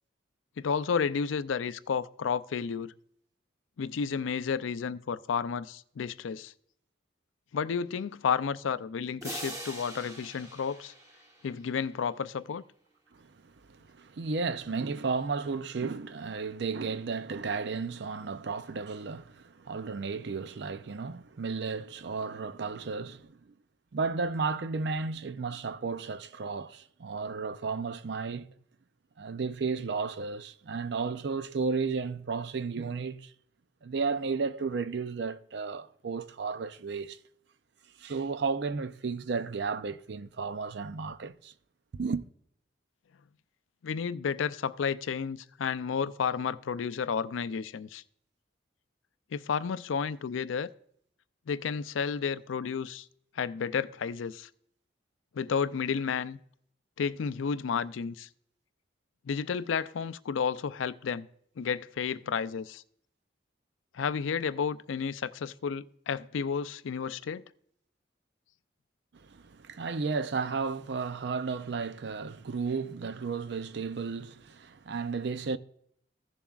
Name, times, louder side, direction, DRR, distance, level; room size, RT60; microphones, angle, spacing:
voice 1, 0.6-2.9 3.8-6.5 7.5-10.9 11.4-12.6 43.8-48.0 49.3-50.7 51.5-53.1 53.4-54.5 55.3-56.4 57.0-58.3 59.3-61.3 61.6-62.8 63.9-67.4, left 6 dB, 85° left, 0.4 m, -31 dB
sound 1, 9.2-11.9, right 1 dB, 20° right, 1.0 m, -43 dB
voice 2, 13.1-23.5 23.9-28.5 29.2-33.3 33.8-37.2 38.0-41.5 41.9-42.2 69.1-75.6, right 4 dB, 60° right, 0.5 m, -33 dB
15.5 x 7.1 x 2.4 m
head